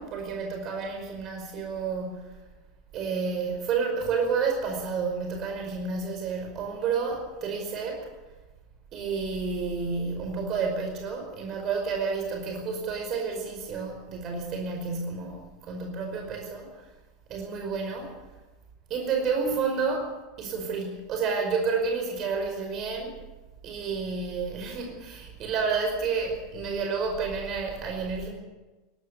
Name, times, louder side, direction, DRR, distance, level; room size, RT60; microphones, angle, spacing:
voice 1, 0.0-2.3 2.9-8.1 8.9-16.7 17.3-18.1 18.9-20.1 20.4-23.2 23.6-28.3, right 5 dB, 35° right, 2 dB, 5.2 m, -30 dB
20.5 x 16.5 x 8.3 m, 1.2 s
figure-of-eight pair, 85°, 0 cm